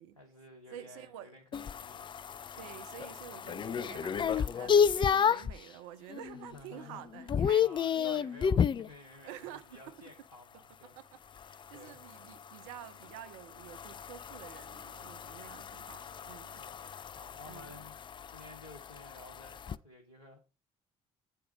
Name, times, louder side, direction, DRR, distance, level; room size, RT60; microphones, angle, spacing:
voice 1, 0.1-2.1 6.2-11.3 11.7-12.0 16.6-20.4, left 2 dB, 90° left, 1.0 m, -54 dB
voice 2, 0.7-1.3 2.6-7.6 7.9-8.4 9.2-9.9 11.0-11.1 11.4-16.6 17.5-17.8, right 11 dB, 65° right, 0.8 m, -49 dB
sound 1, 1.5-5.6 6.1-6.5 6.8-8.9 11.4-19.8, left 7 dB, 30° left, 0.4 m, -32 dB
9.6 x 4.5 x 5.2 m
figure-of-eight pair, 50°, 17 cm